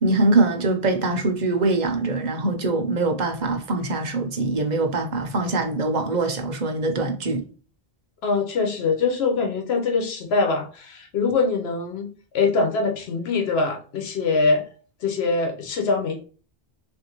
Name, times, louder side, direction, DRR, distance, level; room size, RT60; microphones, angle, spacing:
voice 1, 0.0-7.4, right 2 dB, 50° right, 0.7 m, -23 dB
voice 2, 8.2-14.7 15.0-16.2, left 4 dB, 90° left, 1.0 m, -23 dB
3.5 x 2.6 x 2.9 m
omnidirectional pair, 1.0 m